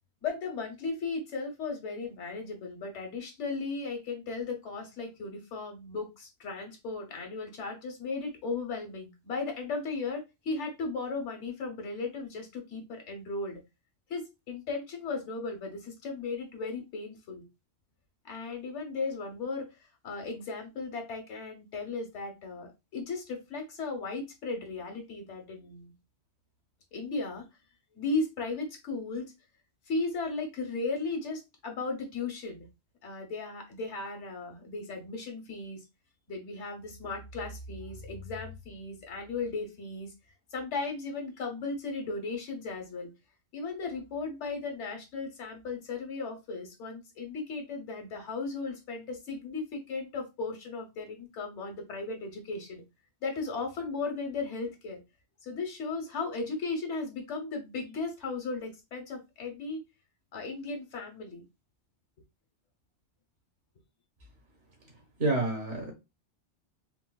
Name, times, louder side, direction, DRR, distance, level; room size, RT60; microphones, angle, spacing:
voice 1, 0.2-13.6 14.1-17.4 18.2-19.8 20.0-25.9 26.9-27.4 27.9-29.3 29.9-32.7 33.0-35.8 36.3-40.1 40.5-43.1 43.5-52.8 53.2-55.0 55.4-59.8 60.3-61.4, left 3 dB, 85° left, 1.3 m, -36 dB
voice 2, 65.2-65.9, right 2 dB, 70° right, 1.5 m, -28 dB
4.3 x 2.2 x 2.2 m
omnidirectional pair, 1.2 m